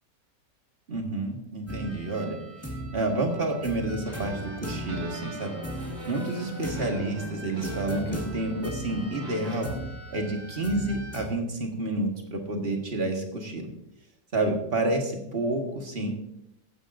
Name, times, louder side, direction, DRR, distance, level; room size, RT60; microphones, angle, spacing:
voice 1, 0.9-2.4 2.9-5.5 6.1-9.7 10.1-13.6 14.3-16.1, right 2 dB, 35° right, 2 dB, 1.6 m, -29 dB
sound 1, 1.7-11.3, equal, 10° left, 1.5 m, -39 dB
sound 2, 4.0-9.6, equal, 20° right, 4.8 m, -39 dB
14.5 x 9.8 x 2.6 m, 0.80 s
omnidirectional pair, 1.8 m